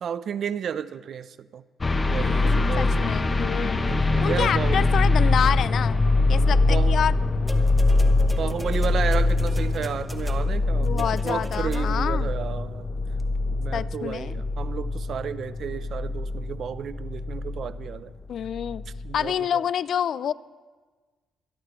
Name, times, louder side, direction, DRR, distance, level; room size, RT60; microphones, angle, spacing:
voice 1, 0.0-1.6 2.0-2.9 3.8-4.9 6.2-7.0 8.4-12.8 13.5-18.1 19.0-19.6, right 8 dB, 60° right, 0.5 m, -32 dB
sound 1, 1.8-18.0 18.4-19.3, left 2 dB, 25° left, 0.8 m, -23 dB
voice 2, 2.1-3.8 4.2-7.1 10.7-12.3 13.7-14.4 18.3-18.8 19.1-20.3, left 9 dB, 65° left, 0.3 m, -28 dB
sound 2, 7.5-12.2 13.2-13.3, right 1 dB, 5° right, 1.1 m, -41 dB
25.5 x 11.5 x 3.1 m
cardioid pair, 90°, 0 cm